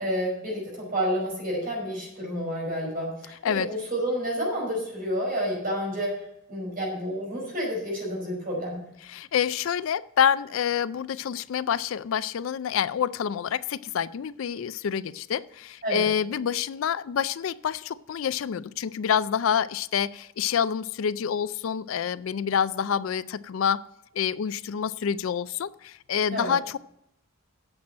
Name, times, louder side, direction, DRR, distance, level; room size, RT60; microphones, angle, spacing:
voice 1, 0.0-6.1 6.5-8.8 15.8-16.1 26.3-26.5, equal, 45° right, -2 dB, 5.2 m, -29 dB
voice 2, 9.0-23.9 24.1-26.8, left 8 dB, 70° left, 17 dB, 0.4 m, -27 dB
8.8 x 7.5 x 7.3 m, 0.78 s
head